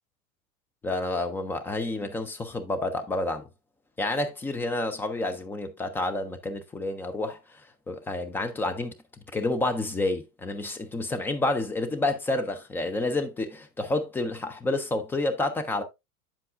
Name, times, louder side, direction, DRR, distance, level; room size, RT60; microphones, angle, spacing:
voice 1, 0.8-3.4 4.0-7.4 7.9-8.9 9.3-15.8, left 2 dB, 5° left, 0.3 m, -29 dB
8.5 x 7.5 x 2.4 m
figure-of-eight pair, 85°, 44 cm